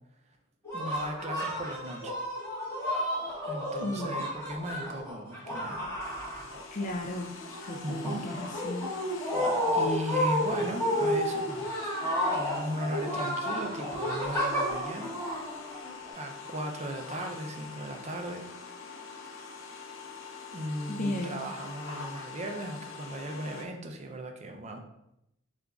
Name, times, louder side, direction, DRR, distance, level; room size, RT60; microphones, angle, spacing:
sound 1, 0.6-6.9 7.1-16.1, equal, 15° left, 1.4 m, -31 dB
voice 1, 0.7-2.1 3.4-5.8 7.8-8.3 9.4-12.0 12.3-15.1 16.1-18.4 20.5-24.8, right 1 dB, 35° right, 3 dB, 0.5 m, -37 dB
voice 2, 3.8-4.2 6.7-8.8 21.0-21.5, left 1 dB, 40° left, 1 dB, 0.4 m, -35 dB
sound 2, 6.0-23.6, left 4 dB, 85° left, 0.6 m, -44 dB
6.6 x 2.5 x 2.4 m, 0.83 s
head